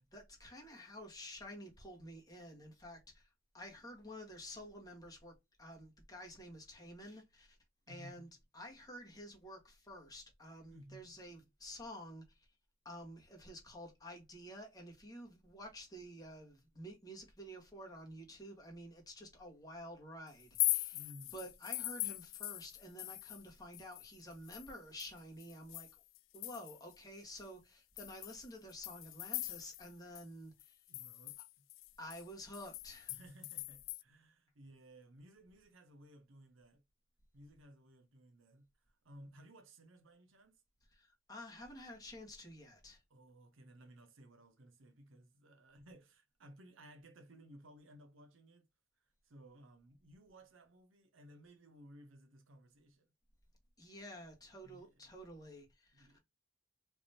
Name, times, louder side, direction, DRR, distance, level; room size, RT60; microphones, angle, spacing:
voice 1, 0.0-7.6 7.9-8.3 8.5-12.5 12.8-21.0 21.3-25.9 26.3-30.8 32.0-33.1 40.9-43.0 53.8-56.2, equal, 20° left, 1.4 m, -51 dB
voice 2, 7.9-8.3 10.7-11.2 20.9-21.3 30.9-31.7 33.1-36.8 37.3-40.6 43.1-48.7 49.0-53.1 54.6-55.0 55.9-56.2, equal, 75° right, 0.8 m, -58 dB
sound 1, 20.4-23.5 23.7-26.9 27.4-27.5 28.0-29.9 30.2-30.3 30.6-34.0, left 19 dB, 70° left, 0.3 m, -41 dB
3.4 x 3.0 x 2.7 m
head